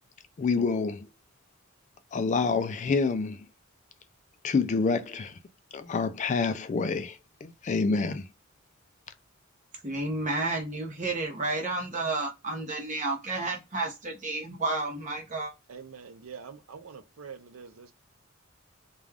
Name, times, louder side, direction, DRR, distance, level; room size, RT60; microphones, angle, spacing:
voice 1, 0.4-1.1 2.1-3.5 4.4-5.4 5.7-8.3, left 4 dB, 35° left, 0.3 m, -27 dB
voice 2, 9.8-15.5, right 2 dB, 40° right, 0.9 m, -31 dB
voice 3, 15.7-17.9, right 6 dB, 90° right, 0.5 m, -45 dB
2.4 x 2.3 x 3.3 m
head